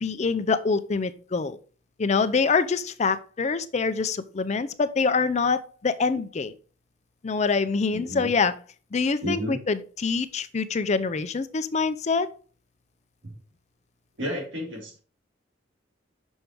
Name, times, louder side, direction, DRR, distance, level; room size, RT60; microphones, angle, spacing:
voice 1, 0.0-1.6 2.0-6.5 7.2-8.5 8.9-12.3, left 4 dB, 35° left, 13 dB, 0.5 m, -25 dB
voice 2, 7.9-8.3 9.2-9.6 13.2-13.3 14.2-15.0, equal, 85° right, -2 dB, 3.5 m, -32 dB
6.3 x 4.9 x 4.5 m, 0.39 s
head